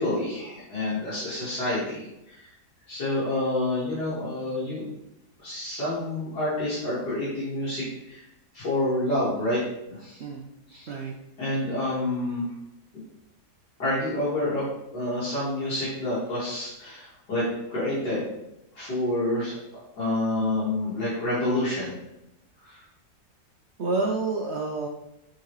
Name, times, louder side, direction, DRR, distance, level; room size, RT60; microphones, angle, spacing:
voice 1, 0.0-2.5 2.9-4.8 5.4-8.2 8.5-9.6 9.9-10.2 10.7-10.9 11.4-12.5 13.8-14.6 14.9-17.4 17.7-18.2 18.7-19.5 20.0-22.0 22.6-22.8, left 1 dB, 90° left, -11 dB, 2.8 m, -28 dB
voice 2, 23.8-24.9, right 3 dB, 60° right, 1 dB, 0.7 m, -28 dB
8.1 x 3.9 x 3.2 m, 0.86 s
omnidirectional pair, 1.7 m